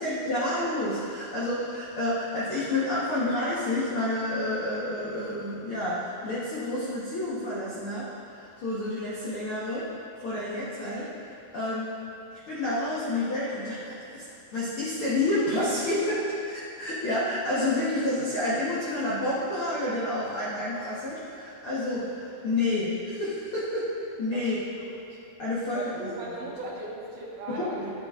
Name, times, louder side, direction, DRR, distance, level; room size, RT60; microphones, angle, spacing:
voice 1, 0.0-9.8 10.2-11.9 12.3-23.9 24.2-24.6 25.4-26.1 27.5-27.9, left 1 dB, 75° left, -9 dB, 1.2 m, -29 dB
voice 2, 24.3-25.2 25.7-27.8, right 2 dB, 75° right, -4 dB, 2.7 m, -38 dB
11.0 x 7.6 x 2.4 m, 2.7 s
omnidirectional pair, 4.0 m